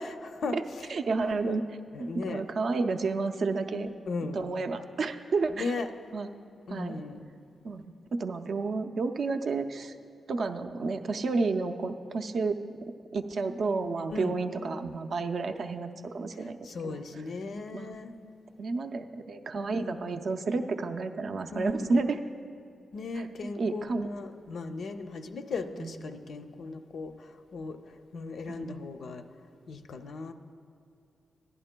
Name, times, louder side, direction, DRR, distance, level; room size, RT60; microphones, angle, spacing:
voice 1, 0.0-0.9 1.2-1.6 1.9-2.4 4.1-4.5 5.5-5.9 6.7-7.3 14.1-14.4 16.6-18.1 19.6-20.1 21.5-22.1 22.9-29.2 29.7-30.3, left 3 dB, 65° left, 7 dB, 0.5 m, -37 dB
voice 2, 0.9-1.6 2.0-3.9 4.3-5.7 6.1-6.3 6.7-7.0 7.6-9.9 10.3-12.6 13.1-16.6 16.8-17.0 17.7-18.0 18.6-22.2 23.2-23.3 23.6-24.1 25.8-26.0 28.5-28.8, right 3 dB, 55° right, 7 dB, 0.4 m, -31 dB
15.0 x 11.0 x 2.2 m, 2.4 s
wide cardioid pair, 140°, 0 cm